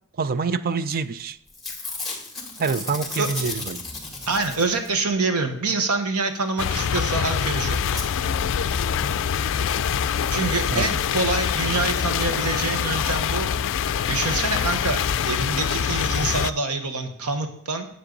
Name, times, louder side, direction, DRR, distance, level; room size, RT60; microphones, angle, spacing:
voice 1, 0.1-1.4 2.6-3.8 10.7-10.9, right 5 dB, 40° right, 14 dB, 0.4 m, -26 dB
Packing tape duct tape / Tearing, 1.0-1.2 1.5-5.1 7.0-7.1 7.3-7.4 8.0-8.1 8.7-8.8 9.0-9.1, left 3 dB, ahead, 2.1 m, -34 dB
voice 2, 4.3-8.1 10.3-13.5 14.1-17.9, right 3 dB, 85° right, 6 dB, 1.2 m, -26 dB
sound 1, 6.6-16.5, left 8 dB, 60° left, 0.4 m, -24 dB
9.8 x 7.7 x 3.9 m, 0.75 s
head